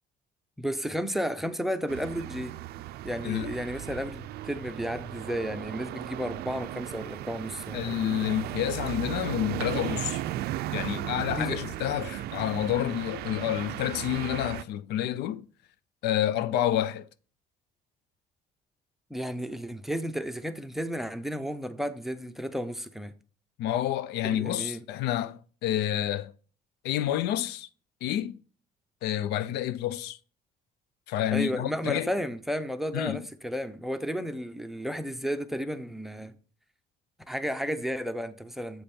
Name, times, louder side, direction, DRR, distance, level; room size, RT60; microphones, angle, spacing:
voice 1, 0.6-2.5 3.0-8.0 11.4-11.6 19.1-23.1 24.2-24.8 31.3-36.3 37.3-38.8, equal, ahead, 0.6 m, -33 dB
sound 1, 1.9-14.6, right 14 dB, 70° right, 0.4 m, -36 dB
voice 2, 3.2-3.5 7.7-10.2 10.7-15.5 16.0-17.1 23.6-26.3 26.8-27.7 28.0-28.4 29.0-30.2 31.1-32.1 32.9-33.2, left 12 dB, 80° left, 0.4 m, -29 dB
7.7 x 5.1 x 4.3 m
cardioid pair, 110°, 17 cm